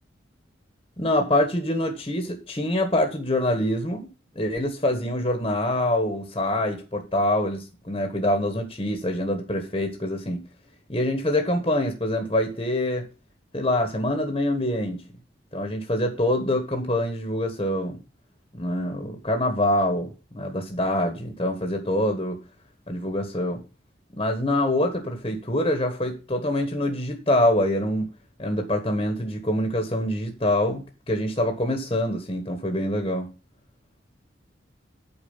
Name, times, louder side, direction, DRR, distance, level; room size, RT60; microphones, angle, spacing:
voice 1, 1.0-4.1 4.3-10.4 10.9-13.0 13.5-15.0 15.5-18.0 18.5-22.4 22.9-23.6 24.2-28.1 28.4-33.3, left 1 dB, 25° left, 4 dB, 1.4 m, -25 dB
8.8 x 4.7 x 7.3 m, 0.33 s
head